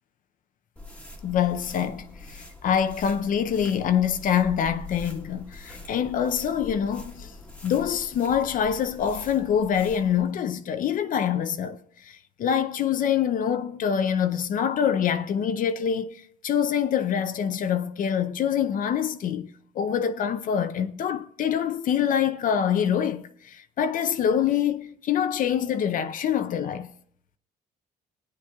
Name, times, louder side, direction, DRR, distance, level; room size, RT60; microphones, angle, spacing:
sound 1, 0.8-10.3, left 2 dB, 5° left, 1.3 m, -44 dB
voice 1, 1.2-7.3 7.6-11.8 12.0-19.5 19.8-26.9, left 8 dB, 55° left, 0.6 m, -25 dB
20.0 x 9.3 x 2.3 m
cardioid pair, 110°, 17 cm